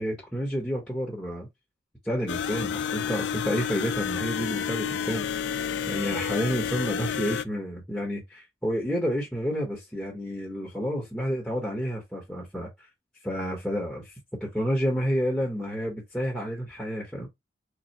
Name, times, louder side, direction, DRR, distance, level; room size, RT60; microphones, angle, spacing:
voice 1, 0.0-1.5 2.0-5.3 5.9-12.9 13.2-14.1 14.4-17.3, equal, ahead, 1.0 m, -30 dB
sound 1, 2.3-7.4, left 7 dB, 65° left, 0.3 m, -30 dB
3.6 x 3.2 x 2.8 m
head